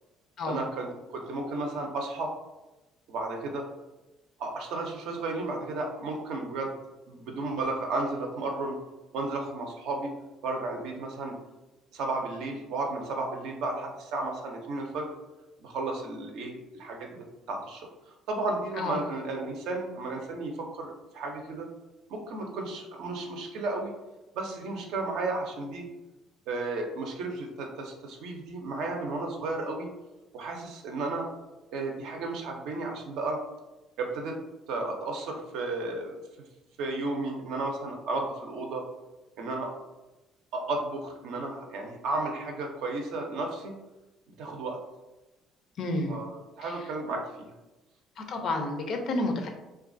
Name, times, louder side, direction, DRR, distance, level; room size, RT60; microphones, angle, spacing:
voice 1, 0.5-2.3 3.1-3.6 4.4-6.7 7.1-8.8 9.1-10.1 10.4-11.3 11.9-15.1 15.6-17.9 18.3-21.7 22.1-23.9 24.4-25.9 26.5-29.9 30.3-31.3 31.7-33.4 34.0-34.4 34.7-36.1 36.8-38.8 39.4-39.7 40.5-43.7 44.3-44.8 46.1-47.5, right 2 dB, 75° right, 2 dB, 0.5 m, -33 dB
voice 2, 45.8-46.2 46.6-46.8 48.2-49.5, left 2 dB, 60° left, 4 dB, 0.4 m, -30 dB
2.3 x 2.3 x 2.5 m, 1.0 s
supercardioid pair, 65°, 0 cm